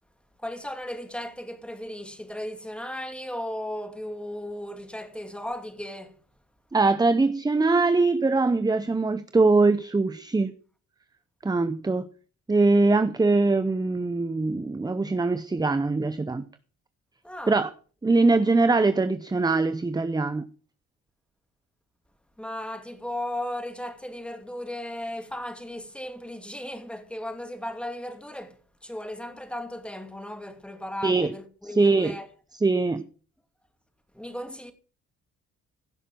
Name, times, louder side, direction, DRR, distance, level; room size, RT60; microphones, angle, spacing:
voice 1, 0.4-6.1 17.2-17.6 22.4-28.6 28.8-32.3 34.1-34.7, left 1 dB, 5° left, 2.5 m, -36 dB
voice 2, 6.7-10.5 11.4-12.1 12.5-16.4 17.5-17.7 18.0-20.5 31.0-31.3 31.8-32.2 32.6-33.0, right 3 dB, 15° right, 0.7 m, -22 dB
16.0 x 6.5 x 6.1 m
cardioid pair, 90°, 30 cm